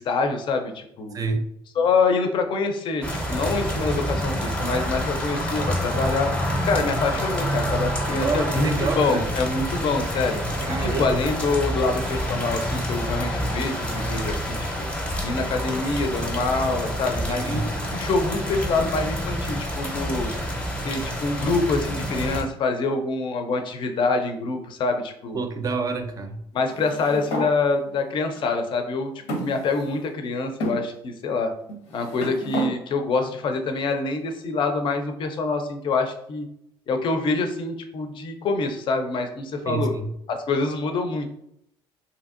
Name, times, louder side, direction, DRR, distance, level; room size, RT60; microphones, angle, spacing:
voice 1, 0.0-1.1 1.8-6.3 6.6-8.7 9.0-10.4 10.8-14.7 15.2-20.3 20.8-25.4 26.5-31.5 31.9-36.5 36.9-39.9 40.3-41.3, left 3 dB, 50° left, 0.5 m, -25 dB
voice 2, 1.1-1.5 8.2-9.3 10.6-11.2 17.3-17.7 25.3-26.4 39.7-40.1, right 4 dB, 35° right, 0.4 m, -27 dB
sound 1, 3.0-22.4, equal, 10° left, 0.6 m, -27 dB
sound 2, 26.7-27.5 28.3-28.4 29.3-30.1 30.6-30.8 31.7-32.7, equal, 90° left, 0.7 m, -31 dB
2.8 x 2.6 x 2.5 m
cardioid pair, 110°, 11 cm